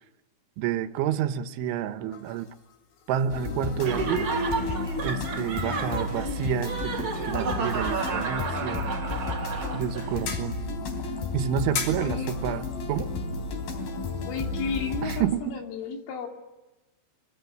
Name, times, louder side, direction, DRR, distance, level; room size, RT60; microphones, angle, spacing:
voice 1, 0.6-2.5 3.1-4.3 5.0-9.0 9.7-10.6 11.3-13.1 15.0-15.4, right 9 dB, 80° right, 11 dB, 3.5 m, -29 dB
sound 1, 2.1-15.2, left 6 dB, 70° left, 5.3 m, -43 dB
sound 2, 3.3-15.2, left 3 dB, 50° left, 4.7 m, -32 dB
Laughter, 3.8-10.1, right 3 dB, 35° right, 2.6 m, -31 dB
voice 2, 12.0-12.4 14.3-16.3, left 6 dB, 85° left, 4 dB, 5.4 m, -33 dB
25.0 x 24.0 x 9.3 m, 1.1 s
omnidirectional pair, 5.5 m